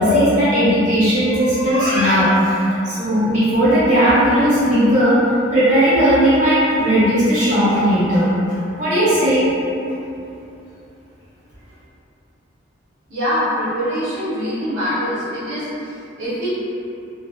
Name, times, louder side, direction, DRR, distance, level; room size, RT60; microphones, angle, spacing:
voice 1, 0.0-2.6 2.8-5.2 5.5-9.5, equal, 45° right, -12 dB, 1.2 m, -16 dB
voice 2, 13.1-16.5, equal, 80° right, -12 dB, 0.7 m, -24 dB
2.6 x 2.1 x 2.2 m, 2.8 s
head